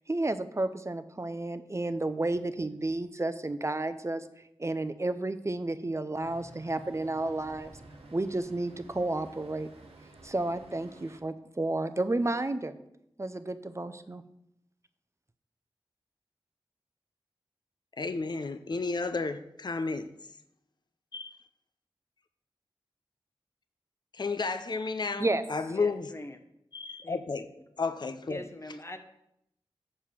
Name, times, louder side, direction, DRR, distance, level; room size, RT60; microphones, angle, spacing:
voice 1, 0.0-7.7 8.1-9.7 10.0-12.8 13.2-14.2 25.2-25.4, right 2 dB, 30° right, 0.6 m, -32 dB
Traffic noise roadway noise, 6.2-11.2, right 2 dB, 90° right, 1.2 m, -52 dB
voice 2, 18.0-20.1 21.1-21.4 24.1-25.2 25.5-26.1 26.7-27.5 27.8-28.4, left 4 dB, 50° left, 0.5 m, -32 dB
voice 3, 25.7-26.4 27.0-27.2 28.3-29.0, left 1 dB, 30° left, 0.9 m, -42 dB
7.4 x 4.8 x 6.9 m
wide cardioid pair, 55°, 10 cm